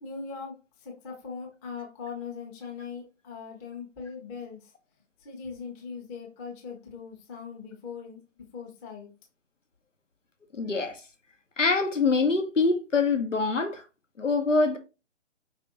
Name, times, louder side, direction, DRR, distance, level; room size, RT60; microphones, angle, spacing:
voice 1, 0.0-4.7 5.2-8.2 8.5-9.1, left 5 dB, 15° left, 0.9 m, -40 dB
voice 2, 10.5-11.0 11.6-13.8 14.2-14.8, left 3 dB, 85° left, 1.2 m, -24 dB
5.2 x 3.4 x 2.9 m
figure-of-eight pair, 140°, 36 cm